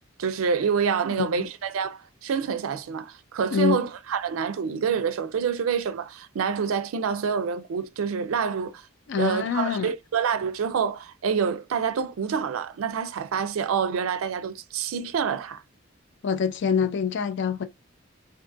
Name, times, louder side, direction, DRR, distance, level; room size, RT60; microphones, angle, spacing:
voice 1, 0.2-8.8 9.2-15.6, right 6 dB, 80° right, 0.4 m, -27 dB
voice 2, 1.1-1.5 3.5-3.9 9.1-9.9 16.2-17.7, left 7 dB, 60° left, 0.4 m, -25 dB
2.5 x 2.5 x 2.5 m
head